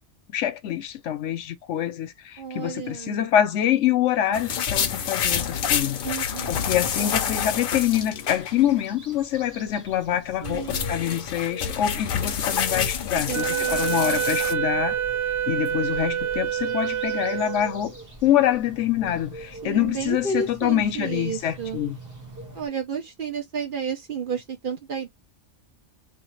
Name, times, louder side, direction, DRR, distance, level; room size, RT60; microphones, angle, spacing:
voice 1, 0.3-15.0 15.5-17.9 18.2-22.0, left 11 dB, 80° left, 0.9 m, -25 dB
voice 2, 2.4-3.2 6.0-6.7 10.4-10.9 13.1-14.2 19.6-21.8 22.5-25.1, right 5 dB, 50° right, 0.9 m, -32 dB
sound 1, 4.3-8.8 9.1-9.2 10.1-14.5, left 8 dB, 60° left, 0.6 m, -28 dB
sound 2, 6.7-22.7, right 1 dB, 15° right, 0.9 m, -43 dB
Wind instrument woodwind instrument, 13.3-17.9, right 10 dB, 85° right, 1.3 m, -27 dB
2.9 x 2.4 x 3.0 m
omnidirectional pair, 1.2 m